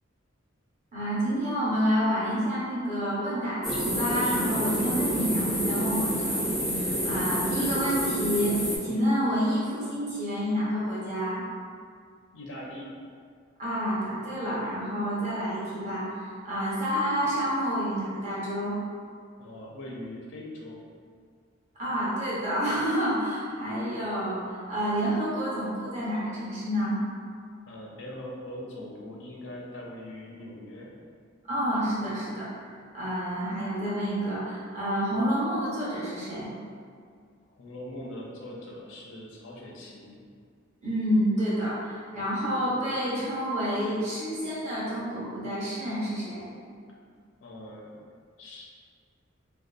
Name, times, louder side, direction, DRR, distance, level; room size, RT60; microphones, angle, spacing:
voice 1, 0.9-6.4 6.7-11.4 13.6-18.7 21.8-27.0 31.5-32.5 32.9-36.5 40.8-46.5, equal, 35° right, -9 dB, 0.8 m, -29 dB
sound 1, 3.6-8.8, equal, ahead, 0.3 m, -28 dB
voice 2, 12.3-12.9 19.4-20.8 27.6-30.9 37.6-40.2 47.4-47.9 48.4-48.7, left 1 dB, 70° left, -3 dB, 0.5 m, -41 dB
2.6 x 2.3 x 2.4 m, 2.1 s
head